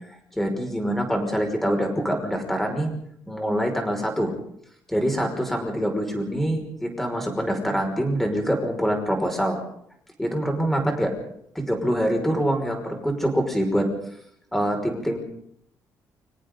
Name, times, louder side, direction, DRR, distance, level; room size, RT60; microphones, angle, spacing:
voice 1, 0.3-2.9 3.3-4.3 4.9-9.6 10.2-11.1 11.5-13.9 14.5-15.2, equal, 5° left, 3 dB, 5.7 m, -25 dB
29.5 x 26.0 x 4.0 m, 0.69 s
cardioid pair, 165°, 7 cm